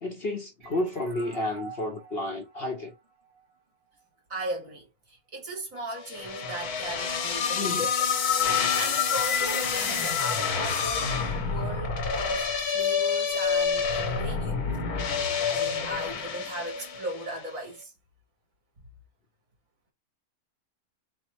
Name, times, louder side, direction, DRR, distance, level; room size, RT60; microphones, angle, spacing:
voice 1, 0.0-2.9 7.6-7.9, left 1 dB, 50° left, 0.8 m, -31 dB
sound 1, 0.6-4.0, right 5 dB, 45° right, 1.1 m, -48 dB
voice 2, 4.3-8.1 8.5-14.6 15.2-17.9, right 1 dB, 60° right, 2.2 m, -38 dB
sound 2, 6.1-17.4, left 6 dB, 85° left, 1.4 m, -28 dB
4.4 x 2.1 x 4.5 m
omnidirectional pair, 1.6 m